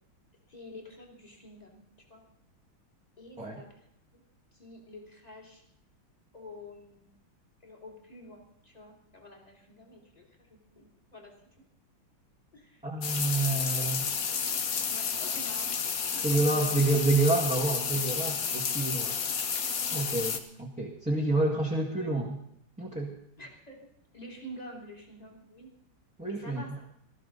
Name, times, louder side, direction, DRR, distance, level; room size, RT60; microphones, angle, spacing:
voice 1, 0.5-1.8 2.1-2.2 3.2-3.7 4.5-5.6 6.3-7.1 7.6-11.3 12.5-12.8 14.9-15.7 16.1-16.7 21.9-22.1 23.4-23.8 24.1-25.7 26.3-26.9, left 1 dB, 20° left, 0 dB, 3.2 m, -48 dB
voice 2, 12.8-14.1 16.2-19.5 19.9-22.4 22.8-23.1 26.2-26.8, right 2 dB, 5° right, -3 dB, 1.8 m, -28 dB
sound 1, 13.0-20.4, left 6 dB, 50° left, 1.4 m, -31 dB
18.5 x 14.0 x 4.0 m, 0.74 s
omnidirectional pair, 2.2 m